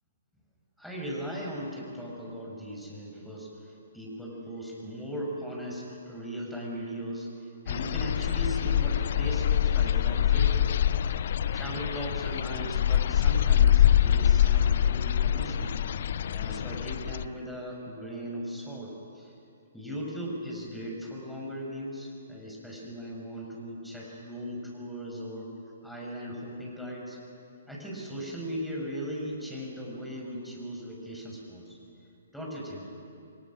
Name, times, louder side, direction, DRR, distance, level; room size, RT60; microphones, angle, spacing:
voice 1, 0.8-3.5 3.9-7.3 7.6-10.8 11.5-15.8 16.3-19.3 19.7-25.5 25.8-27.2 27.7-31.8 32.3-32.8, equal, ahead, -3 dB, 5.9 m, -38 dB
Evening birds medium distant thunder dripping gutter, 7.7-17.3, left 10 dB, 45° left, 0.5 m, -25 dB
29.0 x 22.5 x 6.3 m, 2.5 s
figure-of-eight pair, 125°, 0 cm